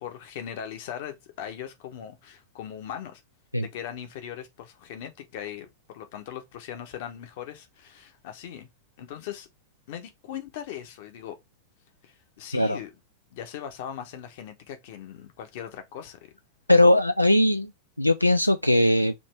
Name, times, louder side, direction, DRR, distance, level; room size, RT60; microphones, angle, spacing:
voice 1, 0.0-3.2 3.6-8.7 9.0-9.5 9.9-11.3 12.0-12.9 13.3-16.2 16.7-16.9, left 9 dB, 50° left, 1.1 m, -39 dB
voice 2, 16.7-17.7 18.0-19.1, left 1 dB, 90° left, 0.3 m, -19 dB
5.1 x 2.9 x 3.4 m
figure-of-eight pair, 90°, 0 cm